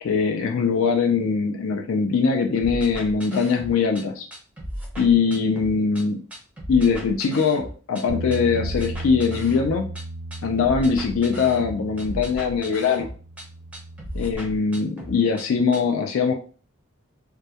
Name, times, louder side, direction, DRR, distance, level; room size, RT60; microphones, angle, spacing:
voice 1, 0.0-4.3 5.0-6.2 6.7-9.9 10.4-13.1 14.1-16.3, left 5 dB, 75° left, 3 dB, 0.4 m, -22 dB
sound 1, 2.6-4.0 4.3-6.0 6.3-8.0 8.3-10.0 10.3-13.4 13.7-15.4 15.7-15.8, equal, 5° right, 0.5 m, -36 dB
Bass guitar, 8.1-14.3, right 2 dB, 85° right, 0.4 m, -35 dB
2.2 x 2.2 x 2.7 m, 0.40 s
head